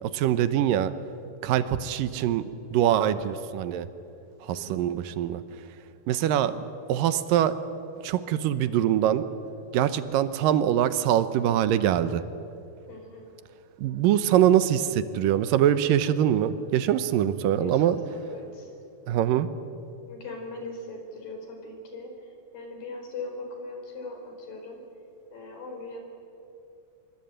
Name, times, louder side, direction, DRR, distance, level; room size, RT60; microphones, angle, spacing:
voice 1, 0.0-0.9 1.4-3.9 4.5-5.4 6.1-6.6 6.9-7.5 8.0-9.3 9.7-12.2 13.8-18.0 19.1-19.5, right 11 dB, 80° right, 13 dB, 2.5 m, -23 dB
voice 2, 4.5-5.0 12.9-13.3 17.6-18.7 20.1-24.8 25.3-26.0, left 2 dB, 85° left, 3 dB, 6.2 m, -40 dB
25.0 x 23.0 x 9.0 m, 2.7 s
omnidirectional pair, 4.0 m